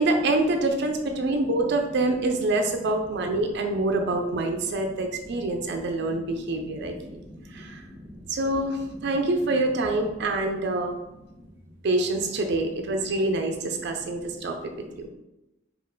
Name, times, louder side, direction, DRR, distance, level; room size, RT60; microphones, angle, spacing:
voice 1, 0.0-7.2 7.5-7.8 8.3-11.0 11.8-14.7 15.0-15.1, right 2 dB, 60° right, 4 dB, 0.4 m, -26 dB
voice 2, 7.0-8.3 9.0-9.1, equal, 15° right, 1 dB, 0.6 m, -45 dB
5.2 x 2.4 x 3.7 m, 0.96 s
head